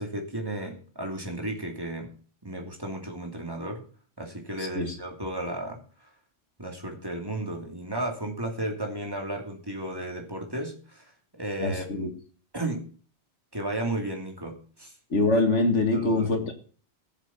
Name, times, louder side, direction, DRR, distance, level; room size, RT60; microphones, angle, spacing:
voice 1, 0.0-2.1 2.4-3.8 4.2-6.1 6.6-12.1 12.5-12.8 13.5-15.0 15.9-16.3, right 1 dB, 20° right, 2 dB, 2.8 m, -34 dB
voice 2, 11.6-12.1 15.1-16.5, left 2 dB, 85° left, 6 dB, 2.3 m, -24 dB
15.0 x 7.3 x 7.1 m, 0.42 s
omnidirectional pair, 1.2 m